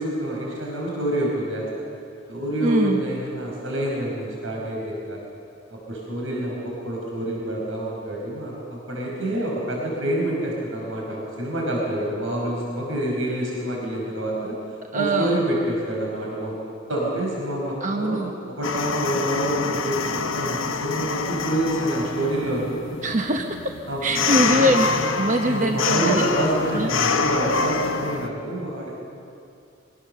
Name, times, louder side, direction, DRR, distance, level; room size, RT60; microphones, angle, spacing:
voice 1, 0.0-1.7 2.3-5.2 5.7-14.6 14.9-16.6 16.9-18.2 18.5-22.7 23.9-24.6 25.5-28.9, right 1 dB, 90° right, -2 dB, 5.3 m, -27 dB
voice 2, 2.6-3.0 14.9-15.4 17.8-18.3 23.0-23.5 24.0-24.9 25.1-26.2 26.7-26.9, right 1 dB, 40° right, 3 dB, 0.9 m, -22 dB
sound 1, 18.6-28.3, left 4 dB, 85° left, 1.1 m, -26 dB
23.5 x 18.5 x 6.7 m, 2.5 s
head